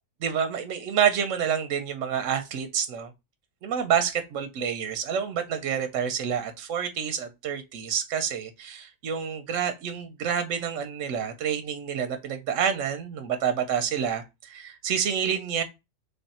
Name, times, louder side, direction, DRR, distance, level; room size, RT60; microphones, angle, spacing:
voice 1, 0.2-3.1 3.6-15.6, right 8 dB, 85° right, 1.0 m, -28 dB
3.4 x 3.4 x 4.1 m
omnidirectional pair, 1.3 m